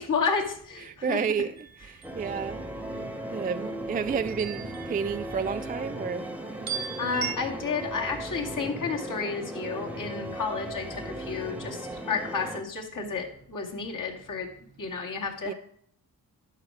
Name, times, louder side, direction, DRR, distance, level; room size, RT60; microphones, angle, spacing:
voice 1, 0.0-1.2 7.0-11.8 12.1-14.5 14.8-15.5, left 5 dB, 55° left, 2.2 m, -31 dB
voice 2, 0.8-2.6 3.3-6.2 13.0-13.2 15.5-15.6, right 6 dB, 25° right, 0.3 m, -31 dB
sound 1, 1.6-2.1 4.3-5.7 6.7-7.3, right 8 dB, 65° right, 1.0 m, -37 dB
sound 2, 2.0-12.6, right 1 dB, 5° right, 1.1 m, -37 dB
11.5 x 5.7 x 4.7 m
cardioid pair, 75°, 39 cm